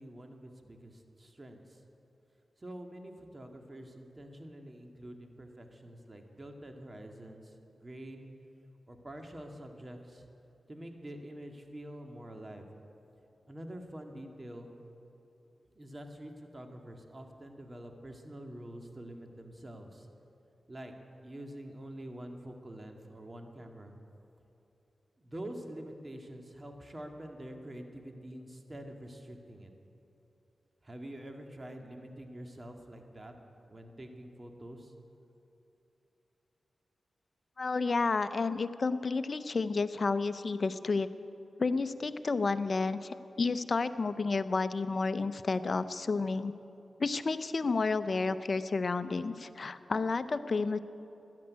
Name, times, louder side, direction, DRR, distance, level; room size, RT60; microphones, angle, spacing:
voice 1, 0.0-1.8 2.6-8.3 8.9-10.2 10.7-12.7 13.4-14.7 15.8-20.1 20.7-20.9 21.2-23.9 25.2-29.7 30.8-33.3 33.7-34.9, right 1 dB, 35° right, 3 dB, 2.0 m, -46 dB
voice 2, 37.6-41.1 41.6-46.5 47.0-50.8, left 4 dB, 55° left, 13 dB, 0.6 m, -31 dB
13.5 x 10.5 x 9.4 m, 3.0 s
cardioid pair, 50°, 0 cm